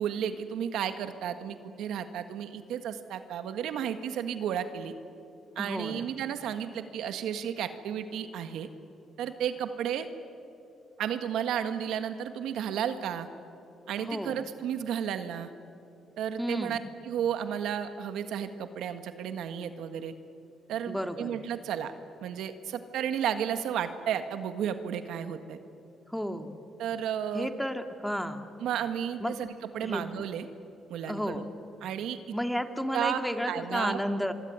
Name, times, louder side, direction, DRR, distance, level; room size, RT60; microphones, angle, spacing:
voice 1, 0.0-4.9 5.5-8.7 9.2-10.1 11.0-13.3 13.9-15.5 16.2-16.8 17.0-20.1 20.7-21.9 22.2-25.6 26.8-27.5 28.6-30.4 30.9-31.4 31.8-32.2 32.9-33.2 33.5-34.0, right 9 dB, 85° right, 9 dB, 1.7 m, -33 dB
voice 2, 5.6-6.1 14.0-14.4 16.4-16.8 20.9-21.4 26.1-26.6 27.3-28.4 29.2-29.3 29.8-30.0 31.1-31.4 32.3-34.3, equal, ahead, 7 dB, 2.0 m, -32 dB
26.0 x 23.5 x 9.5 m, 2.7 s
cardioid pair, 90°, 0 cm